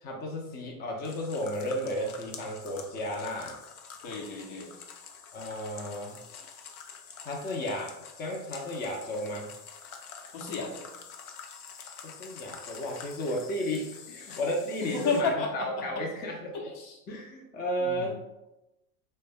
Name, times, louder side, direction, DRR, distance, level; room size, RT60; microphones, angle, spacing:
voice 1, 0.0-3.6 5.3-6.2 7.2-9.5 12.0-16.5 17.1-18.2, equal, 20° left, -1 dB, 0.6 m, -33 dB
sound 1, 1.0-15.2, left 6 dB, 80° left, 0.6 m, -47 dB
voice 2, 4.0-4.7 10.3-10.9 14.8-16.0 16.5-17.0 17.8-18.2, left 3 dB, 60° left, 0 dB, 0.9 m, -32 dB
3.4 x 2.2 x 3.3 m, 0.94 s
hypercardioid pair, 85°, 44 cm